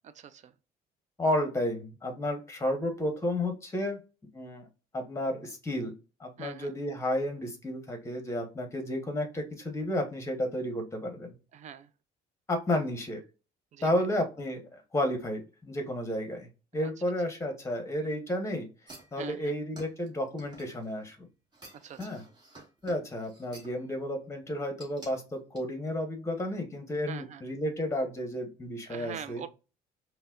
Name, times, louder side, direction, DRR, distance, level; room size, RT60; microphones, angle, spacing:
voice 1, 0.0-0.5 6.4-6.7 11.5-11.9 13.7-14.0 16.8-16.9 19.2-19.5 21.7-22.0 27.1-27.4 28.9-29.5, right 8 dB, 45° right, 0.4 m, -43 dB
voice 2, 1.2-4.0 4.3-4.7 4.9-5.9 6.2-11.3 12.5-13.2 13.8-18.7 19.1-21.3 22.0-22.2 22.8-29.4, left 1 dB, 15° left, 1.1 m, -32 dB
sound 1, 18.9-21.1 21.5-23.8 24.8-25.1 25.6-25.7, right 2 dB, 25° right, 1.4 m, -51 dB
5.3 x 2.2 x 2.4 m
cardioid pair, 110°, 17 cm